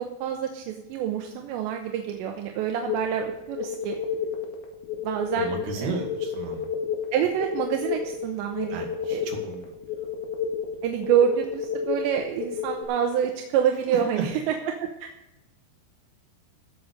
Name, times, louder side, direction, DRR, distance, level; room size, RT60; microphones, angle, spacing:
voice 1, 0.2-4.0 5.0-5.5 5.8-5.9 7.1-8.8 9.1-9.3 10.8-14.5 14.8-14.9, right 9 dB, 75° right, 3 dB, 2.9 m, -26 dB
sound 1, 2.9-12.8, left 7 dB, 85° left, 4.7 m, -31 dB
voice 2, 5.3-6.7 8.6-9.8 13.9-14.3, right 3 dB, 60° right, 1 dB, 4.0 m, -34 dB
16.0 x 6.8 x 6.8 m, 0.93 s
omnidirectional pair, 5.9 m